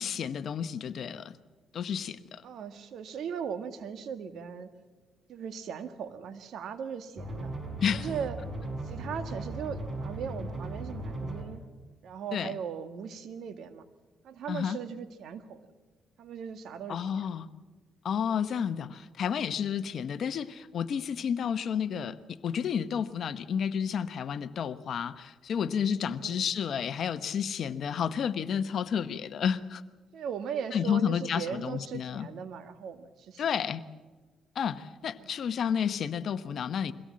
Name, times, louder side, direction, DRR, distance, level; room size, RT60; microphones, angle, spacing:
voice 1, 0.0-1.4 1.7-2.4 7.8-8.1 12.3-12.6 14.5-14.8 16.9-17.5 18.0-29.8 30.7-32.3 33.4-33.8 34.5-36.9, left 7 dB, 60° left, 13 dB, 1.0 m, -31 dB
voice 2, 2.4-4.7 5.3-7.5 7.9-8.4 8.8-11.6 12.0-13.9 14.2-15.7 16.2-17.2 18.2-18.4 21.4-21.6 26.0-26.5 30.1-33.4 35.2-35.3, right 7 dB, 70° right, 10 dB, 1.7 m, -38 dB
sound 1, 7.2-11.4, right 1 dB, 30° right, 5.4 m, -37 dB
23.0 x 17.0 x 7.6 m, 1.3 s
cardioid pair, 90°, 0 cm